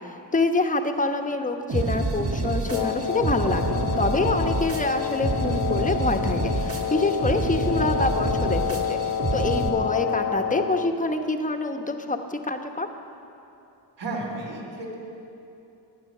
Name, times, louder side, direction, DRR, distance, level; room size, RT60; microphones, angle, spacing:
voice 1, 0.0-9.0 9.3-12.9, left 2 dB, 20° left, 5 dB, 1.1 m, -26 dB
sound 1, 1.7-9.7, right 2 dB, 30° right, 2.0 m, -28 dB
Wind instrument woodwind instrument, 2.6-11.0, left 9 dB, 85° left, 0.9 m, -29 dB
voice 2, 14.0-15.0, right 2 dB, 70° right, -2 dB, 4.2 m, -33 dB
23.0 x 9.5 x 6.7 m, 2.8 s
cardioid pair, 125°, 43 cm